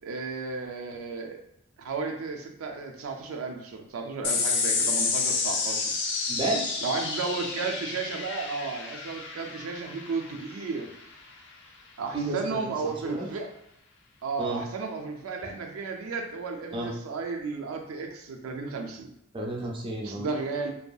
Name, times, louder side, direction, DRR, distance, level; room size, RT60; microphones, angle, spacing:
voice 1, 0.0-1.4 1.8-5.9 6.8-10.9 12.0-13.5 14.2-19.1 20.0-20.7, right 4 dB, 90° right, 3 dB, 0.4 m, -33 dB
sound 1, 4.2-11.0, left 4 dB, 60° left, 0.4 m, -30 dB
voice 2, 6.3-6.8 12.1-12.4 12.8-13.3 14.4-14.6 16.7-16.9 19.3-20.3, right 2 dB, 25° right, -2 dB, 0.4 m, -31 dB
2.7 x 2.3 x 2.3 m, 0.80 s
head